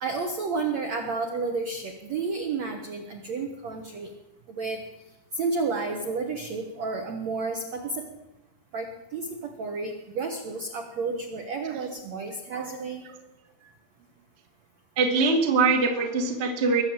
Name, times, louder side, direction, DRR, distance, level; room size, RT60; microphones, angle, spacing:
voice 1, 0.0-4.1 4.5-4.8 5.4-8.1 8.7-13.0, right 4 dB, 80° right, 3 dB, 1.6 m, -31 dB
voice 2, 15.0-16.8, right 4 dB, 55° right, 2 dB, 0.7 m, -22 dB
21.5 x 7.6 x 8.7 m, 0.93 s
omnidirectional pair, 5.2 m